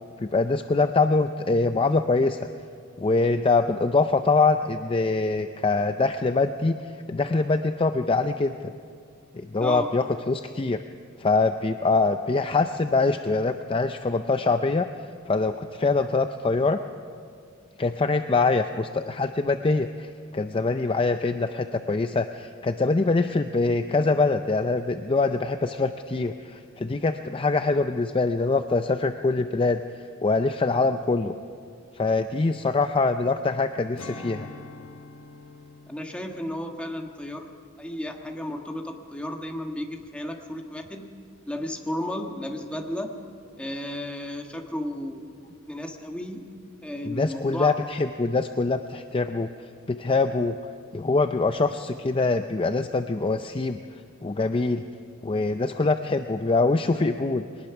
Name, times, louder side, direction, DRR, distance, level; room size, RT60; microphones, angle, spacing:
voice 1, 0.2-2.4 3.0-6.8 7.1-8.7 9.3-10.8 11.2-14.9 15.3-16.8 17.8-29.8 30.2-31.4 32.0-34.5 47.0-49.5 49.9-50.6 50.9-53.8 54.2-54.8 55.2-57.5, left 3 dB, 25° left, 8 dB, 0.5 m, -24 dB
Strum, 34.0-38.7 39.1-39.3, left 3 dB, 75° left, 1.6 m, -46 dB
voice 2, 35.9-37.5 37.8-41.1 41.5-43.1 43.6-45.3 45.7-46.5 46.8-47.8, left 1 dB, 5° left, 2 dB, 1.5 m, -33 dB
22.5 x 19.5 x 5.9 m, 2.2 s
head